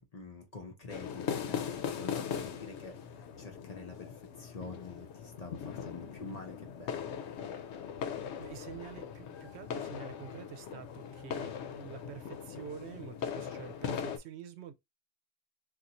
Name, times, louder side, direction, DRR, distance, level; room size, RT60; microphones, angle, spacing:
voice 1, 0.1-3.0 3.4-4.1 4.4-7.1, left 3 dB, 40° left, 0.7 m, -47 dB
sound 1, 0.9-14.2, left 7 dB, 85° left, 0.9 m, -40 dB
voice 2, 8.4-14.7, right 8 dB, 80° right, 0.8 m, -47 dB
2.5 x 2.4 x 4.1 m
omnidirectional pair, 1.1 m